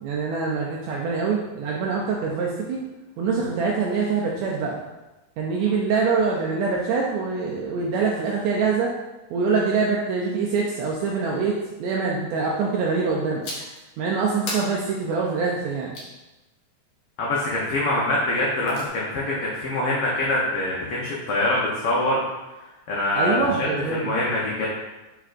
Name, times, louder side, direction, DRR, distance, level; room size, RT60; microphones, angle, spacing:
voice 1, 0.0-2.8 3.2-4.8 5.4-8.9 9.3-11.5 11.8-13.4 14.0-15.9 23.2-24.2, right 4 dB, 80° right, -2 dB, 1.6 m, -24 dB
sound 1, 13.4-13.8 14.5-16.1 18.3-18.9, left 1 dB, 70° left, 1.3 m, -36 dB
voice 2, 17.2-22.2 22.6-24.7, left 1 dB, 85° left, -5 dB, 1.2 m, -24 dB
4.9 x 4.5 x 2.4 m, 1.1 s
omnidirectional pair, 3.5 m